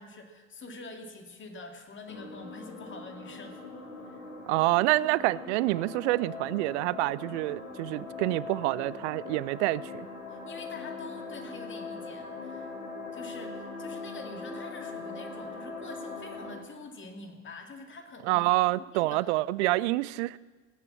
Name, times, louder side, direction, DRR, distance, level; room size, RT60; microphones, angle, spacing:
voice 1, 0.0-3.6 4.1-4.2 10.3-12.7 13.1-18.5 18.8-19.3, left 3 dB, 30° left, 4 dB, 2.2 m, -46 dB
sound 1, 2.1-16.6, left 3 dB, 85° left, 2.8 m, -41 dB
voice 2, 4.5-10.1 18.2-20.4, right 19 dB, 55° right, 20 dB, 0.5 m, -27 dB
16.5 x 9.9 x 7.2 m, 1.4 s
figure-of-eight pair, 65°, 42 cm